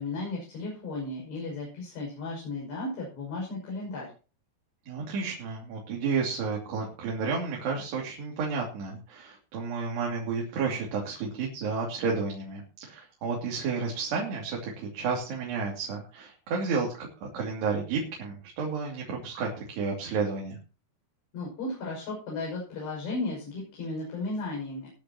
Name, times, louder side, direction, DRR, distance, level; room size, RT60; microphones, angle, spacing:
voice 1, 0.0-4.1 21.3-24.9, left 2 dB, 75° left, -2 dB, 8.2 m, -35 dB
voice 2, 4.9-20.6, right 4 dB, 75° right, -1 dB, 4.8 m, -31 dB
22.0 x 10.5 x 3.0 m, 0.35 s
omnidirectional pair, 4.9 m